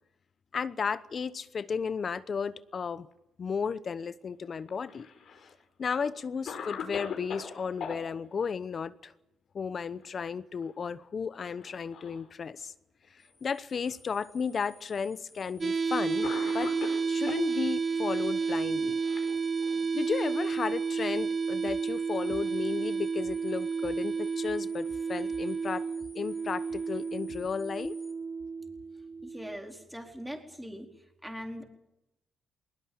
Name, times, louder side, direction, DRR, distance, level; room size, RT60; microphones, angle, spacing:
voice 1, 0.5-3.1 3.4-5.1 5.8-9.1 9.5-12.7 13.4-16.3 16.5-16.7 17.1-19.0 19.9-25.9 26.1-28.0, left 6 dB, 45° left, 0.9 m, -34 dB
Cough, 4.6-5.5 6.0-6.1 6.5-8.0 9.9-10.3 10.6-10.7 11.5-12.2 13.0-13.1 14.2-14.3 15.4-15.6 16.2-17.5 18.4-19.9, left 6 dB, 65° left, 5.0 m, -40 dB
sound 1, 13.2-28.1, left 2 dB, 20° left, 4.5 m, -58 dB
sound 2, 15.6-29.6, right 5 dB, 30° right, 1.0 m, -31 dB
voice 2, 29.2-31.6, equal, 5° right, 4.4 m, -41 dB
21.0 x 20.0 x 8.8 m
cardioid pair, 90°, 0 cm